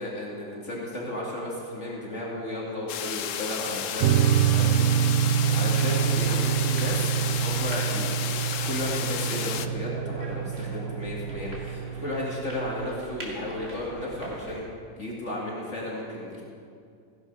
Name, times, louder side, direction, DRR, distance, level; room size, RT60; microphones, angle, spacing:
voice 1, 0.0-8.3 8.6-14.6 15.0-16.4, left 1 dB, 40° left, -4 dB, 2.4 m, -34 dB
sound 1, 2.9-9.7, left 9 dB, 65° left, 0.8 m, -33 dB
sound 2, 4.0-13.0, right 9 dB, 75° right, 0.7 m, -26 dB
sound 3, 5.3-14.6, right 1 dB, 35° right, 2.3 m, -42 dB
16.0 x 10.5 x 5.4 m, 2.4 s
omnidirectional pair, 1.9 m